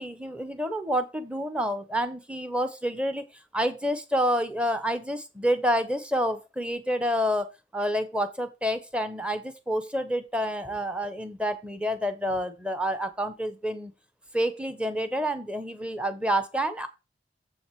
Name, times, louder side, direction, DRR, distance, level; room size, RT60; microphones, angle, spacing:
voice 1, 0.0-3.2 3.5-13.9 14.3-16.9, equal, 5° right, 10 dB, 0.8 m, -28 dB
7.5 x 6.0 x 4.5 m, 0.26 s
head